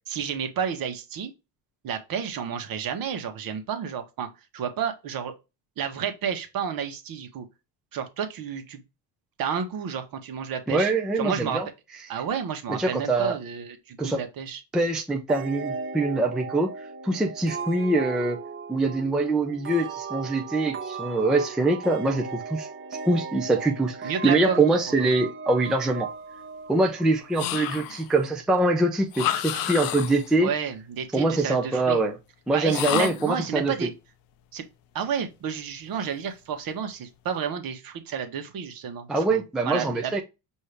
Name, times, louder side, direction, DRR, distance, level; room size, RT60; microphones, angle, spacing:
voice 1, 0.1-1.3 1.8-4.3 4.5-5.3 5.8-7.4 7.9-8.8 9.4-10.9 11.2-11.6 12.1-14.6 24.0-24.6 25.0-25.1 30.4-32.0 32.5-33.9 34.5-34.6 34.9-40.2, right 7 dB, 50° right, 1.2 m, -31 dB
voice 2, 10.7-11.7 12.7-13.4 14.0-14.2 14.7-18.4 18.7-22.7 23.0-26.1 26.7-30.5 31.1-32.2 32.5-33.9 39.1-40.2, right 2 dB, ahead, 0.4 m, -24 dB
sound 1, 15.3-27.7, right 5 dB, 30° right, 1.0 m, -37 dB
sound 2, 27.4-28.1 29.1-30.3 32.7-33.4, left 12 dB, 50° left, 0.5 m, -30 dB
5.4 x 2.7 x 3.3 m
cardioid pair, 120°, 44 cm